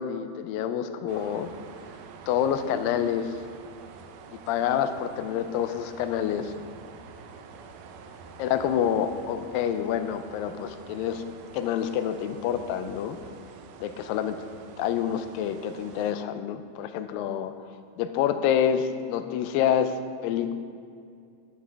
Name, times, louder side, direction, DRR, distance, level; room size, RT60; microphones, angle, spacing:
voice 1, 0.0-1.5 2.3-3.3 4.3-6.5 8.4-11.2 11.5-13.2 13.8-14.4 14.8-17.5 18.0-20.0 20.2-20.5, left 9 dB, 80° left, 10 dB, 2.2 m, -27 dB
sound 1, 1.1-16.1, right 5 dB, 85° right, 2.6 m, -47 dB
13.0 x 11.0 x 3.5 m, 2.4 s
omnidirectional pair, 4.3 m